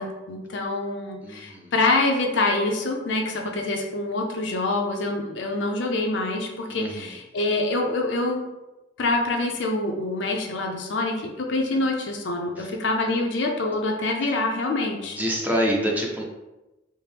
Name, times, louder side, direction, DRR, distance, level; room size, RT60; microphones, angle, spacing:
voice 1, 0.0-8.5 9.0-15.2, left 2 dB, 70° left, 2 dB, 0.6 m, -26 dB
voice 2, 1.2-1.7 6.7-7.2 12.6-12.7 14.2-14.3 15.0-16.2, equal, 10° right, -1 dB, 0.5 m, -27 dB
4.3 x 2.1 x 3.3 m, 1.0 s
head